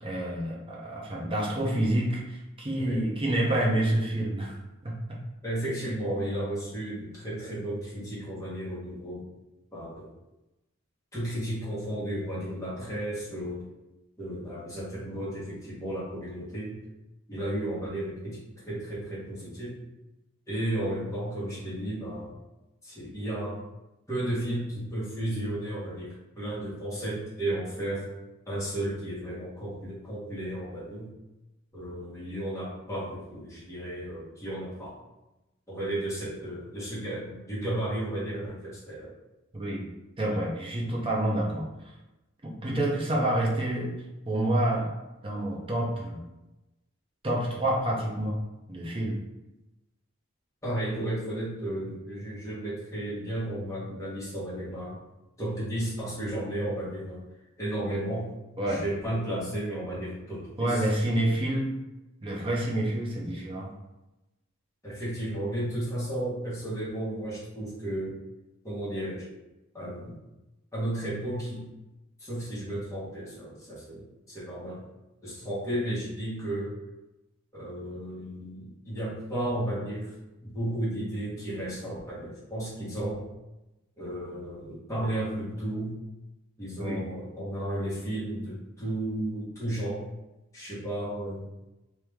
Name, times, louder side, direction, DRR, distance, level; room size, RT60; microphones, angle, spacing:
voice 1, 0.0-4.6 4.8-5.2 39.5-39.9 40.2-41.7 42.4-43.9 44.3-45.0 45.2-46.2 47.2-48.4 48.7-49.2 58.6-58.8 60.6-61.7 62.2-63.7 86.8-87.0, right 1 dB, 25° right, -3 dB, 0.7 m, -28 dB
voice 2, 5.4-9.2 9.7-10.1 11.1-13.6 14.2-16.8 17.3-18.4 18.6-19.8 20.5-22.3 22.8-23.5 24.1-28.1 28.5-31.1 31.7-34.9 35.7-39.1 50.6-55.0 55.4-57.2 57.6-58.3 58.6-60.9 64.8-68.2 68.6-69.3 69.7-70.2 70.7-71.7 72.2-74.8 75.2-76.8 77.5-80.1 80.4-83.2 84.0-86.0 86.6-90.0 90.5-91.5, right 1 dB, 15° left, -9 dB, 1.4 m, -33 dB
3.2 x 2.9 x 3.5 m, 0.99 s
head